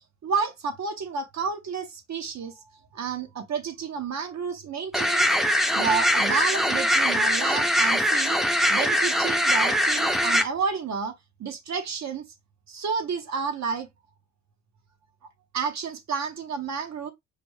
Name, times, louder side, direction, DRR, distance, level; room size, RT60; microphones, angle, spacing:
voice 1, 0.2-2.6 2.9-5.3 5.7-8.4 8.7-11.1 11.4-12.2 12.7-13.9 15.5-17.1, right 5 dB, 60° right, 0.8 m, -30 dB
sound 1, 4.9-10.4, equal, ahead, 0.5 m, -22 dB
4.9 x 2.0 x 3.1 m
cardioid pair, 100°, 31 cm